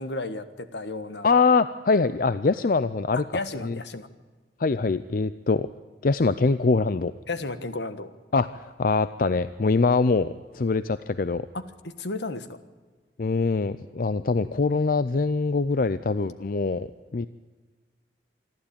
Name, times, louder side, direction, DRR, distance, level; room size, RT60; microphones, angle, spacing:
voice 1, 0.0-1.3 3.1-4.1 7.3-8.1 11.5-12.6, left 2 dB, 75° left, 11 dB, 1.4 m, -33 dB
voice 2, 1.2-3.2 3.6-3.8 4.6-5.7 6.0-7.1 8.3-11.5 13.2-17.3, left 4 dB, 50° left, 14 dB, 0.5 m, -23 dB
26.5 x 12.5 x 8.7 m, 1.4 s
head